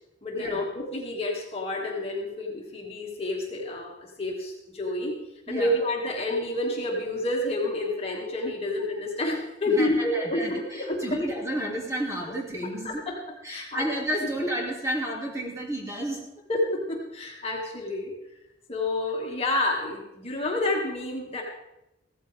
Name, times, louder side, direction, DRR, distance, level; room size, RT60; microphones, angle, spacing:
voice 1, 0.2-5.2 5.5-11.2 12.6-13.2 13.5-13.9 16.5-18.1 18.7-21.4, left 1 dB, 30° left, -2 dB, 2.3 m, -29 dB
voice 2, 9.7-13.0 13.4-16.2, right 1 dB, 15° right, -2 dB, 2.7 m, -31 dB
16.0 x 14.5 x 3.6 m, 0.88 s
head